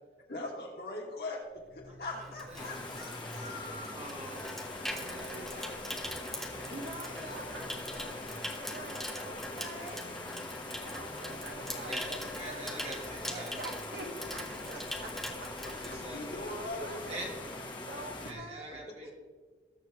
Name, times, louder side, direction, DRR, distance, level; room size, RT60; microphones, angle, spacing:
voice 1, 0.3-3.9 15.6-17.3 18.7-18.8, left 2 dB, 60° left, -1 dB, 2.6 m, -41 dB
Water tap faucet / Sink (filling or washing), 1.6-16.6 16.9-17.2, equal, ahead, 1.2 m, -42 dB
sound 1, 1.7-18.6, equal, 45° left, 2.2 m, -54 dB
voice 2, 1.9-2.7 3.9-4.6 4.9-6.4 7.0-7.1 11.8-13.5 15.8-16.5 17.1-17.3 18.3-19.1, right 1 dB, 35° right, -2 dB, 2.5 m, -45 dB
sound 2, 2.6-18.3, left 2 dB, 25° left, 1.2 m, -43 dB
voice 3, 6.4-10.1 10.8-12.2 12.5-12.8 13.2-15.5 16.4-17.2 17.9-19.1, right 2 dB, 65° right, 2 dB, 1.6 m, -46 dB
20.0 x 7.3 x 3.2 m, 1.5 s
head